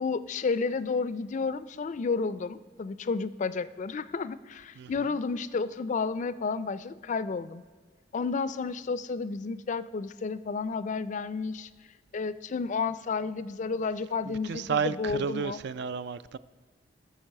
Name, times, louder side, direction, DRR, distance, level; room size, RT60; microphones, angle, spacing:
voice 1, 0.0-7.6 8.1-11.7 12.1-15.6, left 4 dB, 40° left, 0.4 m, -31 dB
voice 2, 14.3-16.4, right 6 dB, 60° right, 0.4 m, -32 dB
16.0 x 6.8 x 6.5 m
head